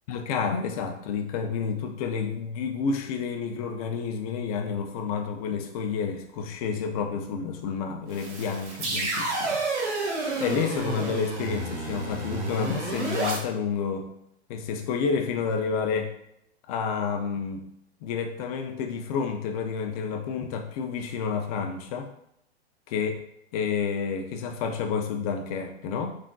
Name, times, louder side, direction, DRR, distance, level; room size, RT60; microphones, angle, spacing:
voice 1, 0.1-9.6 10.4-14.1 14.5-16.1 16.7-17.7 18.0-22.1 22.9-23.1 23.5-26.2, left 6 dB, 35° left, 5 dB, 0.4 m, -29 dB
sound 1, 8.1-13.4, right 3 dB, 85° right, 1.1 m, -30 dB
3.5 x 2.5 x 2.2 m, 0.75 s
hypercardioid pair, 130°, 34 cm